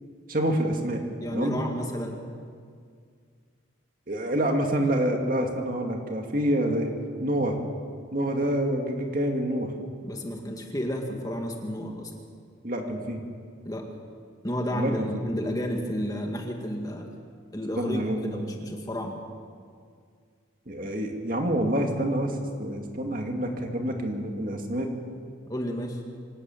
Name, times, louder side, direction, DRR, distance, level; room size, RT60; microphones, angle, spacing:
voice 1, 0.3-1.0 1.3-1.5 4.1-7.6 8.1-9.7 12.6-13.2 14.7-15.1 17.8-18.5 20.7-24.9, right 1 dB, 45° right, 3 dB, 2.3 m, -27 dB
voice 2, 1.2-2.2 10.0-12.1 13.6-13.9 14.4-17.1 17.5-19.2 25.5-26.0, equal, 20° left, 2 dB, 2.0 m, -31 dB
25.5 x 12.5 x 9.1 m, 2.1 s
head